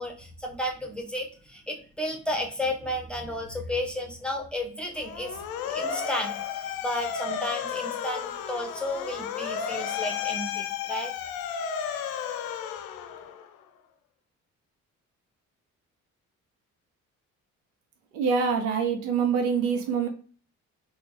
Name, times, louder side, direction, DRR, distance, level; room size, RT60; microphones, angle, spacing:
voice 1, 0.0-6.4 6.8-11.1, left 1 dB, ahead, 1 dB, 1.0 m, -33 dB
Motor vehicle (road) / Siren, 5.0-13.6, left 8 dB, 60° left, 0.6 m, -33 dB
voice 2, 18.1-20.1, right 6 dB, 70° right, 4 dB, 0.7 m, -25 dB
3.9 x 2.4 x 3.2 m, 0.40 s
figure-of-eight pair, 45°, 42 cm